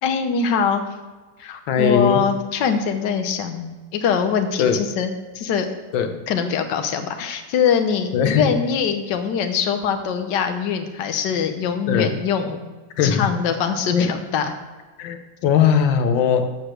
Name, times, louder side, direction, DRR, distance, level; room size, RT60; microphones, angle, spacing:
voice 1, 0.0-0.8 1.4-5.7 6.3-12.6 13.0-14.5, left 7 dB, 70° left, 7 dB, 1.5 m, -23 dB
voice 2, 1.7-2.2 4.6-4.8 5.9-6.2 8.1-8.5 11.9-12.2 13.0-13.3 13.9-14.1 15.0-16.5, left 7 dB, 90° left, 7 dB, 1.6 m, -19 dB
13.5 x 4.8 x 6.4 m, 1.3 s
omnidirectional pair, 2.0 m